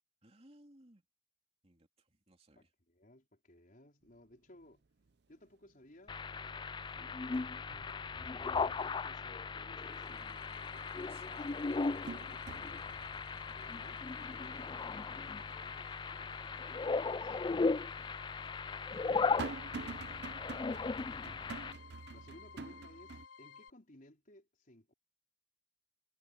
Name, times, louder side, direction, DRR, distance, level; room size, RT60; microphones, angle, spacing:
voice 1, 0.2-1.0 1.6-2.7 11.0-11.5 13.1-13.7 18.0-18.6 18.9-19.4 19.8-20.3, right 1 dB, 35° right, 3.3 m, -64 dB
voice 2, 2.5-4.8 5.3-6.7 7.0-12.8 13.5-16.4 16.7-17.4 21.1-21.4 22.1-24.9, left 1 dB, 45° left, 4.8 m, -60 dB
sound 1, 4.1-4.2 4.6-5.1 5.5-6.3 6.6-8.8 9.2-9.3 10.8-10.9 11.4-16.5 16.9-17.0 17.9-23.3, right 4 dB, 60° right, 0.7 m, -48 dB
sound 2, 6.1-21.7, left 4 dB, 25° left, 0.3 m, -37 dB
sound 3, 9.5-23.7, left 7 dB, 85° left, 4.2 m, -56 dB
head